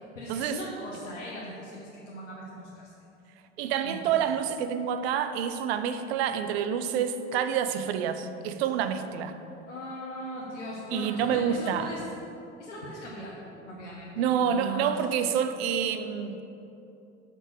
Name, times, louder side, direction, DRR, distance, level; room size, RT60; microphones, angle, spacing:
voice 1, 0.1-2.9 3.8-4.0 9.7-12.0 12.6-15.0, equal, 85° left, -5 dB, 1.1 m, -39 dB
voice 2, 3.6-9.3 10.9-11.9 14.2-16.4, right 8 dB, 60° right, 10 dB, 0.7 m, -28 dB
6.4 x 6.1 x 6.3 m, 2.9 s
figure-of-eight pair, 70°, 35 cm